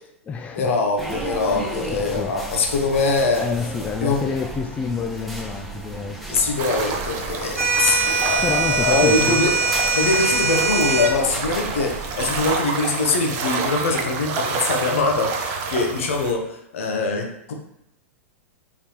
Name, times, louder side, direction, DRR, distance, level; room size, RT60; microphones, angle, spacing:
voice 1, 0.0-0.7 1.1-1.3 1.9-2.5 3.3-6.2 8.4-9.4, left 5 dB, 15° left, 4 dB, 0.3 m, -28 dB
voice 2, 0.5-3.5 4.0-4.2 6.3-9.5 9.9-17.5, left 3 dB, 65° left, 2 dB, 0.9 m, -23 dB
sound 1, 1.0-12.6, right 2 dB, ahead, 0.8 m, -35 dB
sound 2, 6.6-16.3, right 4 dB, 45° right, 0.6 m, -29 dB
sound 3, 7.6-11.2, right 4 dB, 85° right, 0.8 m, -22 dB
3.9 x 3.5 x 2.9 m, 0.79 s
hypercardioid pair, 100°, 8 cm